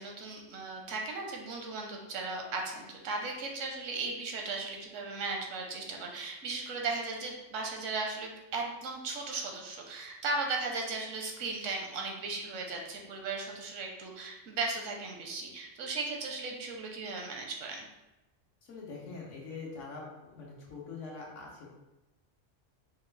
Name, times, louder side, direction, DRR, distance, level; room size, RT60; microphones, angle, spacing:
voice 1, 0.0-17.8, right 3 dB, 85° right, 1 dB, 1.0 m, -36 dB
voice 2, 18.7-21.7, left 4 dB, 75° left, -3 dB, 1.2 m, -44 dB
4.1 x 2.2 x 3.2 m, 1.0 s
omnidirectional pair, 1.3 m